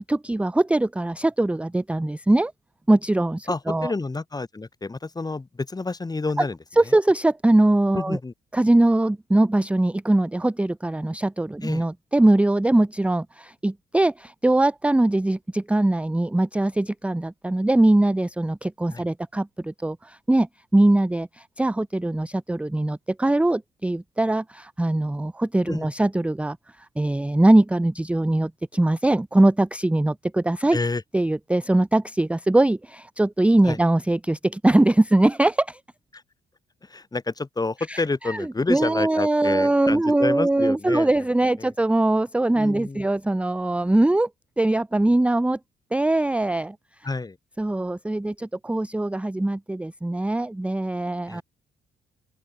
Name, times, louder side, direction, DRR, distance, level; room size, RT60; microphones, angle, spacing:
voice 1, 0.1-2.5 2.9-3.9 6.8-8.2 8.5-30.8 31.1-35.8 37.9-44.3 44.6-45.6 45.9-46.8 47.6-51.4, right 1 dB, 5° right, 0.6 m, -21 dB
voice 2, 3.5-6.6 6.9-7.0 7.9-8.3 11.6-11.8 18.9-19.0 25.6-25.9 30.7-31.0 33.6-33.8 36.1-36.2 36.8-41.1 41.6-41.7 42.5-43.1 47.0-47.4 51.3-51.4, left 3 dB, 20° left, 1.5 m, -29 dB
open air
cardioid pair, 90°, 20 cm